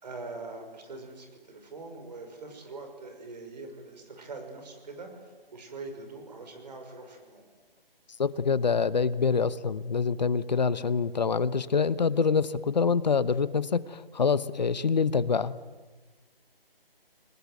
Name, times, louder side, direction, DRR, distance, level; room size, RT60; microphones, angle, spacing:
voice 1, 0.0-7.4, right 3 dB, 45° right, 5 dB, 5.9 m, -43 dB
voice 2, 8.2-15.5, left 5 dB, 45° left, 17 dB, 1.0 m, -26 dB
29.0 x 19.5 x 9.5 m, 1.3 s
figure-of-eight pair, 165°, 30 cm